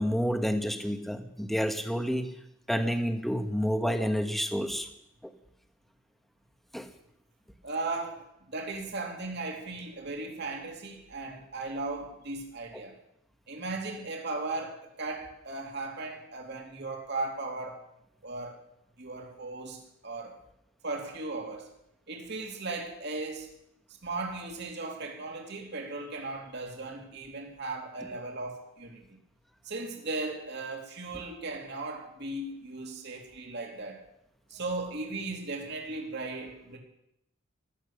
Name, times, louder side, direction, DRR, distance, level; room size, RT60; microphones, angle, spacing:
voice 1, 0.0-2.3 2.7-4.9 6.7-6.9, equal, ahead, 6 dB, 1.2 m, -29 dB
voice 2, 7.6-12.9 13.5-17.8 18.2-18.6 19.0-20.3 20.8-21.7 22.1-23.5 24.0-29.0 29.6-34.0 34.5-36.8, right 3 dB, 55° right, 1 dB, 2.7 m, -37 dB
15.5 x 12.0 x 6.5 m, 0.80 s
head